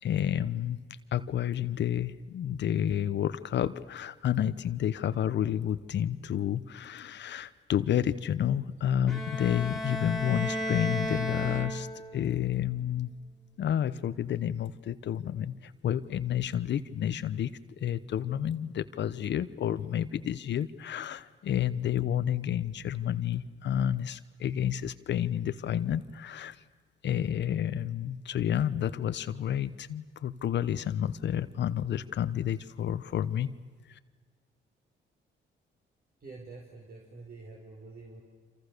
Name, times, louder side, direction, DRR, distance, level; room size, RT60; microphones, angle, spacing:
voice 1, 0.0-0.8 1.1-11.9 12.1-13.1 13.6-17.5 17.8-26.6 27.0-33.5 33.9-34.0, left 10 dB, 65° left, 13 dB, 1.0 m, -30 dB
Bowed string instrument, 9.1-12.2, equal, ahead, 3.8 m, -34 dB
voice 2, 36.2-38.2, right 3 dB, 50° right, -1 dB, 5.0 m, -47 dB
28.5 x 26.5 x 6.7 m, 1.5 s
cardioid pair, 90°, 20 cm